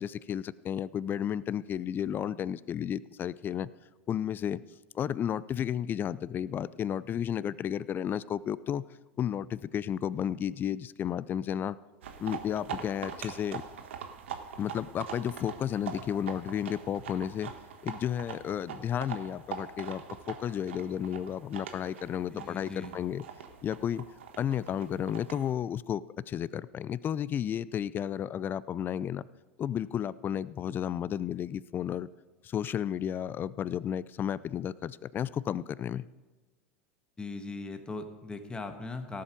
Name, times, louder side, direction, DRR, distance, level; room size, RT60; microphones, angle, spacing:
voice 1, 0.0-3.7 4.1-4.6 4.9-8.8 9.2-11.8 12.2-13.6 14.6-17.5 17.8-23.2 23.6-24.1 24.4-29.3 29.6-32.1 32.4-36.1, left 9 dB, 30° left, 19 dB, 0.4 m, -32 dB
sound 1, 12.0-25.5, right 8 dB, 70° right, 1.3 m, -43 dB
voice 2, 22.3-23.0 37.2-39.2, left 3 dB, 15° left, 6 dB, 1.5 m, -39 dB
17.5 x 7.7 x 5.2 m, 1.2 s
hypercardioid pair, 85°, 7 cm